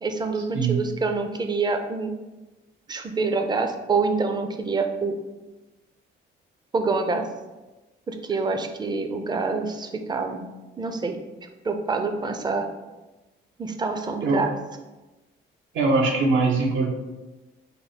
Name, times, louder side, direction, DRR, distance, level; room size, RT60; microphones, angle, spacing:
voice 1, 0.0-2.1 2.9-5.2 6.7-7.3 8.1-10.4 10.8-11.2 11.6-12.7 13.6-14.5, right 4 dB, 20° right, 6 dB, 0.4 m, -26 dB
voice 2, 15.7-16.9, right 3 dB, 75° right, 1 dB, 0.7 m, -21 dB
3.6 x 2.0 x 4.0 m, 1.1 s
cardioid pair, 90°, 20 cm